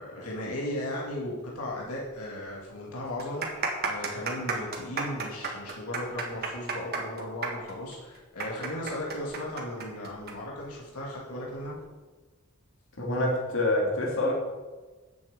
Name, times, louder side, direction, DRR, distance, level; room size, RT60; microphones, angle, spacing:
voice 1, 0.0-3.4 3.8-11.8, left 1 dB, 85° left, -4 dB, 2.4 m, -36 dB
sound 1, 2.0-2.1 2.4-2.5 3.1-10.3 10.6-10.7 11.5-11.7, right 4 dB, 45° right, 1.7 m, -32 dB
voice 2, 13.0-14.4, left 1 dB, 60° left, -2 dB, 2.6 m, -26 dB
7.9 x 7.1 x 7.9 m, 1.3 s
head